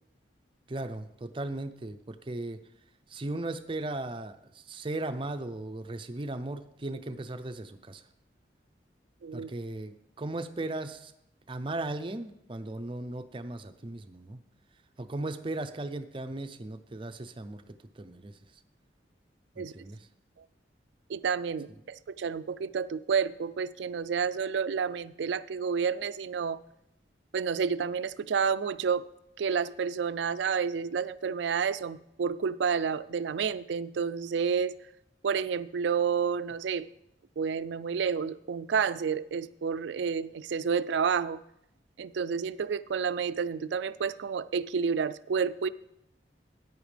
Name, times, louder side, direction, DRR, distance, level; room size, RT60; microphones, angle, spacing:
voice 1, 0.7-2.6 3.1-8.0 9.3-11.1 11.5-14.4 15.0-18.4 19.6-20.1, right 2 dB, 30° right, 0.5 m, -37 dB
voice 2, 21.1-26.6 27.3-29.1 29.4-34.7 35.2-36.9 37.4-41.4 42.0-45.7, right 6 dB, 85° right, 0.4 m, -30 dB
14.0 x 9.6 x 3.4 m
head